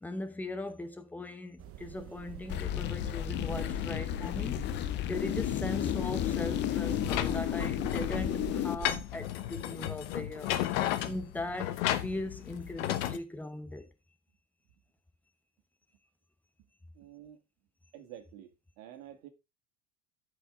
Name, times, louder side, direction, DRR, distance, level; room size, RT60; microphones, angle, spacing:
voice 1, 0.0-10.5 11.0-13.9, left 2 dB, 5° left, 0.9 m, -39 dB
sound 1, 1.6-9.0, right 11 dB, 35° right, 0.8 m, -44 dB
sound 2, 2.5-8.8, left 13 dB, 30° left, 0.4 m, -32 dB
sound 3, 7.0-13.2, left 13 dB, 70° left, 1.1 m, -34 dB
voice 2, 16.9-17.4 17.9-19.3, right 11 dB, 75° right, 2.0 m, -49 dB
12.0 x 5.2 x 3.7 m
supercardioid pair, 150°, 39 cm